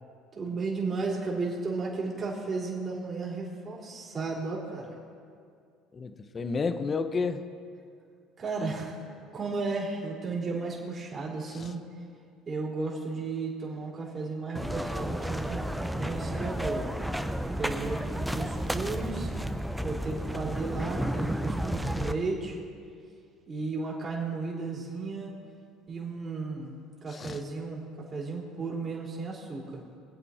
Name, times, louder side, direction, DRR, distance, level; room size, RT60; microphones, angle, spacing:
voice 1, 0.3-4.9 8.4-9.0 9.3-11.8 12.5-15.6 15.9-16.9 17.6-19.3 19.8-22.6 23.5-25.3 25.9-26.7 27.0-27.8 28.1-29.8, right 3 dB, 35° right, -4 dB, 4.1 m, -34 dB
voice 2, 5.9-7.4 11.5-11.7 27.1-27.4, left 4 dB, 35° left, 10 dB, 1.0 m, -31 dB
sound 1, 14.5-22.1, equal, 5° right, 0.8 m, -32 dB
23.5 x 8.4 x 4.4 m, 2.2 s
supercardioid pair, 80°, 0 cm